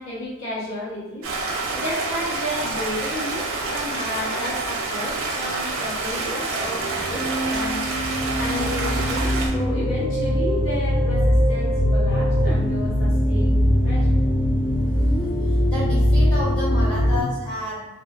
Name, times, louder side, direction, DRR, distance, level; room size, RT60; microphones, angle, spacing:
voice 1, 0.0-7.8 8.4-14.2, left 1 dB, 60° left, -6 dB, 0.6 m, -32 dB
Stream, 1.2-9.5, right 3 dB, 70° right, 0.4 m, -27 dB
sound 1, 6.6-17.2, equal, 25° left, 0.9 m, -21 dB
voice 2, 14.8-17.9, left 1 dB, 5° left, -10 dB, 1.4 m, -31 dB
2.8 x 2.1 x 2.2 m, 1.1 s
head